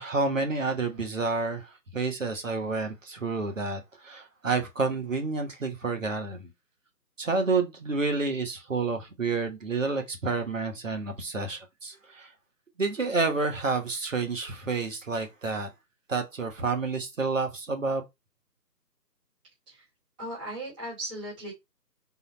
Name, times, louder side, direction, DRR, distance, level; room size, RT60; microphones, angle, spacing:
voice 1, 0.0-6.5 7.2-12.3 12.8-15.7 16.1-18.0, right 3 dB, 50° right, 1.4 m, -29 dB
voice 2, 20.2-21.5, right 1 dB, 5° right, 1.1 m, -37 dB
4.0 x 2.9 x 4.1 m
figure-of-eight pair, 155°, 49 cm